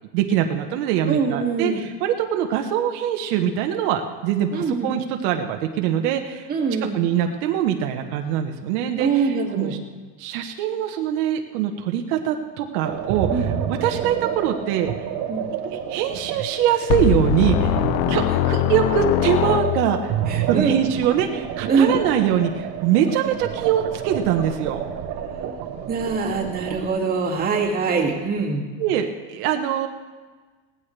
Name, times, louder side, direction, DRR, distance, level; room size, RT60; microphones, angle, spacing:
voice 1, 0.1-6.5 6.9-9.8 10.2-13.3 13.7-14.9 15.7-17.8 18.1-20.1 20.5-24.8 28.8-29.9, right 9 dB, 80° right, 4 dB, 1.3 m, -23 dB
voice 2, 1.1-1.9 4.5-4.9 6.5-7.0 9.0-9.8 13.3-13.5 15.3-15.5 20.3-20.8 21.7-21.9 25.9-28.6, right 5 dB, 20° right, -3 dB, 2.3 m, -23 dB
sound 1, 12.8-26.9, right 8 dB, 50° right, 1.2 m, -29 dB
sound 2, 16.9-20.1, left 16 dB, 65° left, 0.5 m, -22 dB
18.0 x 15.0 x 3.3 m, 1.4 s
cardioid pair, 150°, 45 cm